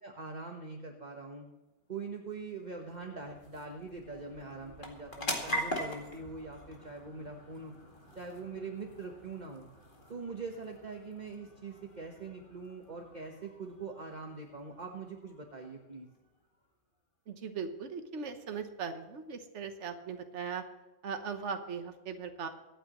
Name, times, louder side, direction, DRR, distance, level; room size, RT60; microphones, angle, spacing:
voice 1, 0.0-1.5 1.9-7.7 8.1-9.7 10.1-16.1, right 4 dB, 35° right, 1 dB, 1.3 m, -43 dB
sound 1, 1.8-16.7, equal, 45° left, 2.2 m, -44 dB
voice 2, 17.3-20.6 21.0-22.5, right 6 dB, 70° right, 7 dB, 1.4 m, -39 dB
24.5 x 9.1 x 3.1 m, 1.1 s
omnidirectional pair, 1.3 m